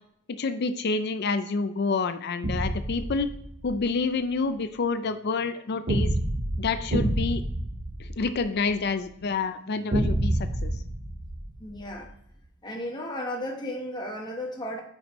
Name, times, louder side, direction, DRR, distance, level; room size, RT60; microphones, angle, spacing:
voice 1, 0.4-3.3 3.6-6.1 6.6-7.4 8.0-10.8, left 4 dB, 50° left, 10 dB, 0.4 m, -28 dB
sound 1, 2.4-3.8 5.9-8.8 9.9-12.1, right 1 dB, 50° right, 1.1 m, -28 dB
voice 2, 11.6-12.1 12.6-14.8, left 1 dB, 20° left, 1 dB, 1.0 m, -34 dB
9.2 x 5.1 x 3.1 m, 0.73 s
head